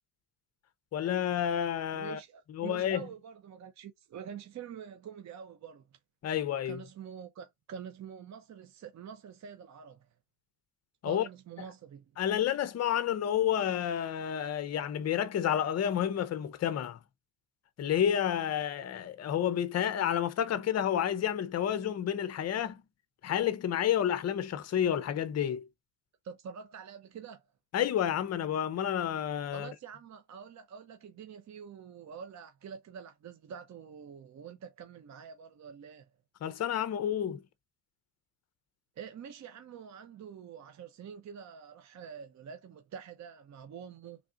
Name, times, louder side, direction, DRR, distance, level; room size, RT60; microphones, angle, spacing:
voice 1, 0.9-2.2 2.5-3.1 6.2-6.8 11.0-11.2 12.2-17.0 17.8-22.8 23.2-25.6 27.7-29.7 36.4-37.4, left 10 dB, 35° left, 0.6 m, -30 dB
voice 2, 1.9-5.9 6.6-10.1 11.0-12.1 26.2-27.4 29.5-36.1 39.0-44.2, right 7 dB, 35° right, 0.6 m, -46 dB
3.4 x 2.5 x 3.7 m
cardioid pair, 125°, 49 cm